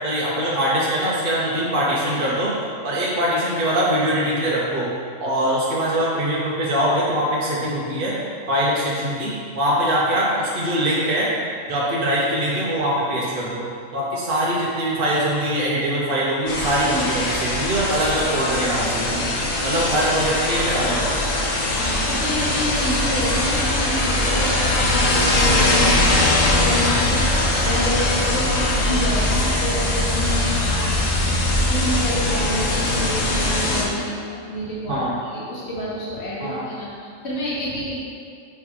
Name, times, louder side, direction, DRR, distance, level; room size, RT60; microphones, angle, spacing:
voice 1, 0.0-2.5 2.8-4.9 5.2-8.1 8.5-11.3 11.7-19.3 19.6-21.0 34.9-35.2 36.4-36.6, right 1 dB, 50° right, -6 dB, 0.9 m, -22 dB
sound 1, 16.5-33.8, left 1 dB, 80° left, 1.3 m, -21 dB
voice 2, 19.7-20.1 21.8-38.1, equal, 55° left, -7 dB, 1.5 m, -28 dB
5.6 x 3.9 x 4.6 m, 2.3 s
omnidirectional pair, 1.3 m